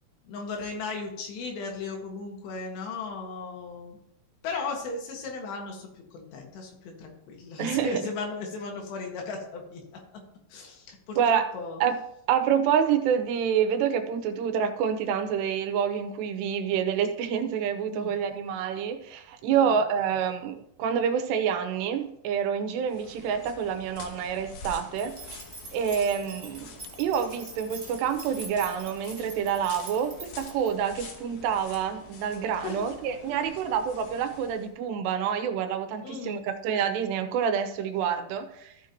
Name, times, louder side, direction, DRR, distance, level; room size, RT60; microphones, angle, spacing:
voice 1, 0.3-4.0 4.4-9.8 10.5-11.8 17.9-18.1 19.5-19.8 32.6-32.8 36.0-36.4, left 4 dB, 85° left, 1 dB, 3.9 m, -36 dB
voice 2, 7.6-8.0 11.2-11.5 11.8-12.0 12.3-25.4 25.7-26.7 27.0-38.7, right 8 dB, 90° right, 7 dB, 3.0 m, -27 dB
sound 1, 22.8-34.7, left 4 dB, 65° left, 2.7 m, -47 dB
sound 2, 24.9-30.7, right 3 dB, 25° right, 2.6 m, -45 dB
14.0 x 6.3 x 2.9 m, 0.77 s
omnidirectional pair, 4.8 m